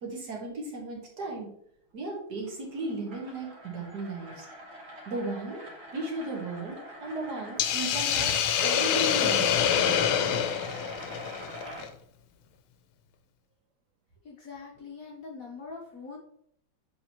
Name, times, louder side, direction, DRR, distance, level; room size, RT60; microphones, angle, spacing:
voice 1, 0.0-1.5 1.9-4.5 5.1-5.6 5.9-9.6, right 2 dB, 55° right, -1 dB, 1.8 m, -35 dB
sound 1, 2.4-11.9, equal, 75° right, 2.6 m, -44 dB
Hiss, 7.6-11.9, left 8 dB, 85° left, 1.5 m, -26 dB
voice 2, 14.2-16.2, left 4 dB, 55° left, -2 dB, 1.1 m, -43 dB
7.4 x 4.4 x 2.9 m, 0.68 s
omnidirectional pair, 2.2 m